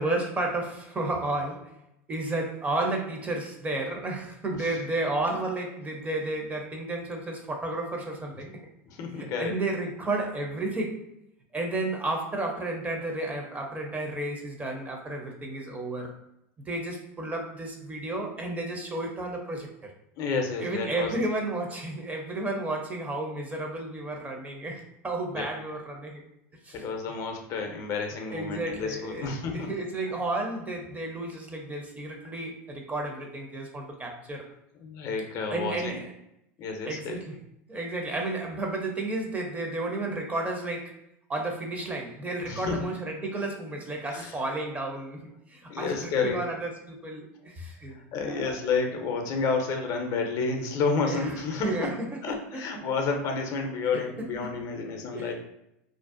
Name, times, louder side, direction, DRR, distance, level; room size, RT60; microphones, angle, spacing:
voice 1, 0.0-1.7 2.1-8.6 9.2-11.0 11.5-16.2 16.7-19.7 20.6-26.2 26.6-26.8 28.3-34.4 35.5-36.1 36.8-37.4 37.7-41.0 41.3-48.6 51.0-52.7 53.9-54.5 55.1-55.3, right 2 dB, 20° right, 2 dB, 0.5 m, -32 dB
voice 2, 8.9-9.5 20.2-21.1 25.3-25.5 26.7-29.7 34.8-36.0 36.6-37.2 42.4-42.9 44.1-44.3 45.7-46.4 47.9-51.9 52.2-55.3, left 4 dB, 45° left, 3 dB, 0.5 m, -30 dB
2.5 x 2.1 x 2.4 m, 0.83 s
hypercardioid pair, 105°, 8 cm